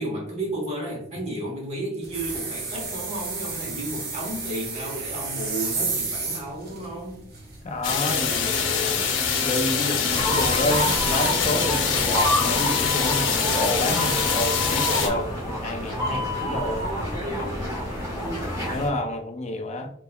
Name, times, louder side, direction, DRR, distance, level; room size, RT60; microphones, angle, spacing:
voice 1, 0.0-7.3, right 1 dB, 35° right, -2 dB, 1.3 m, -32 dB
sound 1, 2.0-11.6, right 4 dB, 55° right, 1.0 m, -33 dB
voice 2, 7.6-9.1 9.4-16.9 18.7-19.9, left 1 dB, 35° left, 4 dB, 0.4 m, -29 dB
sound 2, 7.8-15.1, left 6 dB, 85° left, 0.8 m, -24 dB
sound 3, 10.1-18.9, equal, 15° right, 1.5 m, -28 dB
4.0 x 3.7 x 2.2 m, 0.69 s
head